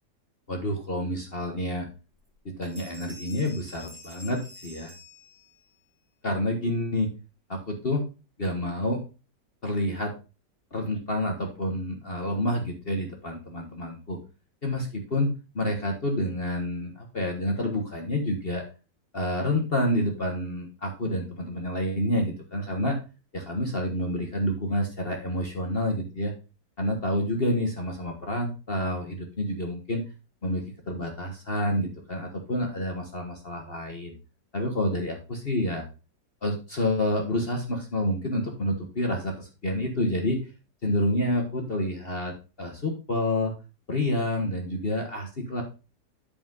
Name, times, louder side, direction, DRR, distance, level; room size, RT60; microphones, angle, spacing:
voice 1, 0.5-1.9 2.4-4.9 6.2-7.1 7.5-8.0 8.4-9.0 9.6-10.1 10.7-14.2 14.6-18.6 19.1-23.0 23.3-26.3 26.8-30.0 30.4-34.1 34.5-35.9 36.4-40.4 40.8-42.3 42.6-43.5 43.9-45.6, left 1 dB, 35° left, 2 dB, 1.3 m, -28 dB
sound 1, 2.1-2.4 2.6-5.8, left 2 dB, 30° right, 1.9 m, -48 dB
10.0 x 5.1 x 3.8 m, 0.31 s
omnidirectional pair, 2.0 m